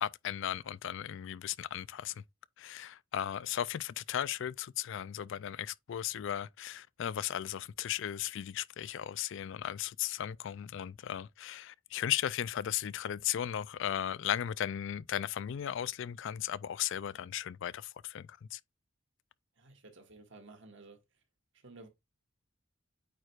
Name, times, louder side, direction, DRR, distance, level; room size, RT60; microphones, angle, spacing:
voice 1, 0.0-2.2 2.6-18.6, left 10 dB, 65° left, 0.4 m, -36 dB
voice 2, 19.6-21.0 21.6-21.9, right 3 dB, 65° right, 1.9 m, -53 dB
8.8 x 4.8 x 2.4 m
head